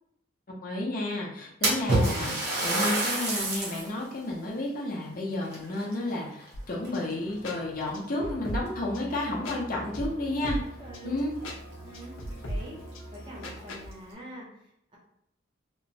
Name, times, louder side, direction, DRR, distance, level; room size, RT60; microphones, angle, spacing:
voice 1, 0.5-10.6 11.0-11.3, left 1 dB, 45° left, -2 dB, 0.6 m, -31 dB
Splash splatter, 1.6-3.9 4.4-4.5 5.4-6.5 6.8-7.3 8.1-8.2 8.7-8.8 10.9-11.0 11.4-11.5 12.0-12.1 12.5-12.6 13.4-13.9, right 2 dB, 50° right, 0.8 m, -28 dB
sound 1, 6.5-13.8, equal, 90° left, 0.6 m, -40 dB
Musical instrument, 8.2-13.7, right 1 dB, 70° right, 1.3 m, -46 dB
voice 2, 10.8-11.2 11.8-12.2 12.4-12.8 13.1-14.5, right 1 dB, 25° right, -4 dB, 0.6 m, -44 dB
2.9 x 2.1 x 2.6 m, 0.74 s
head